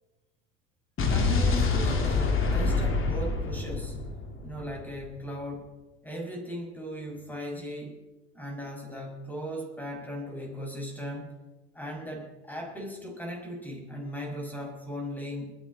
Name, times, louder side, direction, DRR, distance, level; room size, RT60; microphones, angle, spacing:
Explosion, 1.0-5.1, left 4 dB, 35° left, 3.1 m, -26 dB
voice 1, 1.1-4.0 4.4-5.7 6.0-8.0 8.3-11.4 11.7-15.5, equal, 5° left, 0 dB, 6.2 m, -37 dB
21.0 x 11.0 x 4.3 m, 1.1 s
hypercardioid pair, 85°, 35 cm